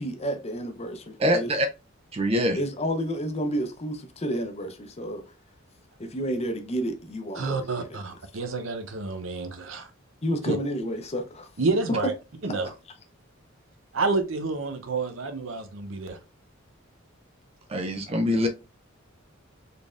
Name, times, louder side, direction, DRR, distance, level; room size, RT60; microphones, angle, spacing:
voice 1, 0.0-1.5 2.5-5.2 6.0-7.9 10.2-11.5 12.4-12.6, equal, 30° left, 0.6 m, -30 dB
voice 2, 1.2-1.7 2.1-2.6 17.7-18.5, equal, 30° right, 0.4 m, -24 dB
voice 3, 7.3-9.9 10.4-10.6 11.6-12.1 12.4-12.7 13.9-16.2, right 3 dB, 70° right, 0.7 m, -29 dB
4.1 x 3.4 x 2.3 m
head